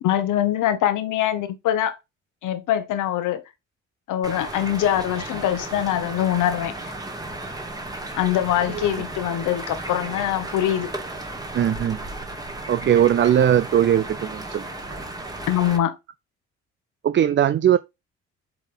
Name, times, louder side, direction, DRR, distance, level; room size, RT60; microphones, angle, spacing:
voice 1, 0.0-2.0 2.4-3.4 4.1-6.8 8.1-10.9 15.5-16.0, left 11 dB, 85° left, 1.1 m, -23 dB
sound 1, 4.2-15.8, right 2 dB, 10° right, 1.7 m, -34 dB
voice 2, 11.5-12.0 12.7-14.7 14.9-15.0 17.0-17.8, right 10 dB, 40° right, 0.4 m, -19 dB
8.3 x 3.5 x 3.8 m
cardioid pair, 90°, 30 cm